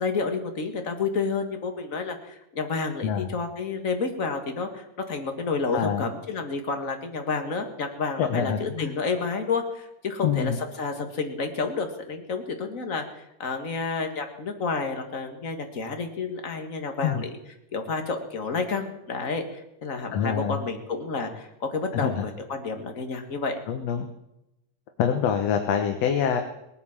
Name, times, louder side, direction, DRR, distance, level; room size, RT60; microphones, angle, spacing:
voice 1, 0.0-17.3 17.7-23.6, left 4 dB, 35° left, 5 dB, 1.7 m, -30 dB
voice 2, 5.7-6.1 8.2-8.9 10.2-10.6 17.0-17.2 20.1-20.6 21.9-22.2 23.7-24.1 25.0-26.4, left 8 dB, 65° left, 5 dB, 2.2 m, -25 dB
19.5 x 9.4 x 7.3 m, 0.88 s
omnidirectional pair, 3.3 m